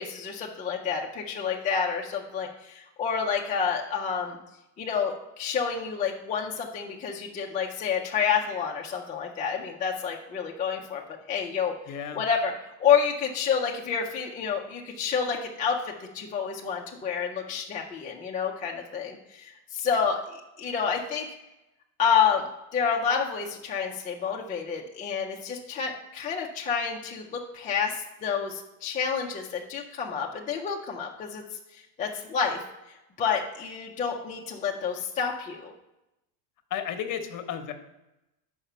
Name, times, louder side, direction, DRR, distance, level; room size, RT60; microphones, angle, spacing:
voice 1, 0.0-4.4 4.8-11.0 11.3-21.3 22.0-22.5 22.7-31.4 32.0-32.6 33.2-35.7, left 6 dB, 20° left, -1 dB, 0.4 m, -29 dB
voice 2, 11.9-12.2 36.7-37.7, left 9 dB, 40° left, 8 dB, 0.9 m, -33 dB
5.5 x 5.0 x 5.5 m, 0.93 s
supercardioid pair, 125°, 49 cm